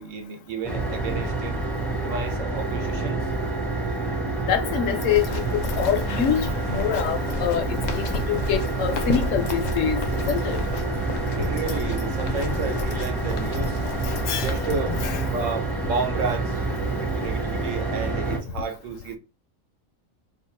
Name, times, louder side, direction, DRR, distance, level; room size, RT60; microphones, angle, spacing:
voice 1, 0.0-1.6 2.0-3.2 11.4-13.8 14.3-15.0 15.3-19.2, right 4 dB, 70° right, 1.1 m, -32 dB
sound 1, 0.6-18.4, right 3 dB, ahead, 0.6 m, -28 dB
voice 2, 4.4-7.6 7.9-10.6 14.0-14.5 14.9-15.2, left 8 dB, 70° left, 0.9 m, -26 dB
sound 2, 4.8-15.1, left 3 dB, 90° left, 0.4 m, -32 dB
2.8 x 2.3 x 4.2 m
omnidirectional pair, 1.4 m